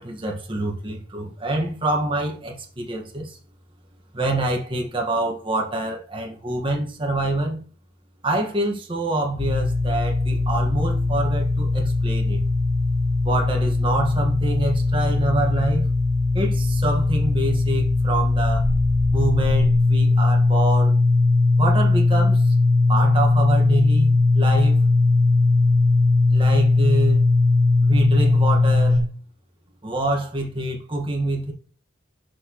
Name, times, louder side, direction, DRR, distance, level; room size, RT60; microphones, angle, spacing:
voice 1, 0.0-3.4 4.1-7.6 8.2-12.4 13.2-15.9 16.3-18.6 19.1-21.0 21.6-22.5 22.9-24.8 26.3-27.2 27.9-29.0 29.8-31.5, right 2 dB, 25° right, 1.6 m, -26 dB
sound 1, 9.4-29.0, left 3 dB, 40° left, 1.4 m, -19 dB
6.6 x 6.2 x 3.1 m
head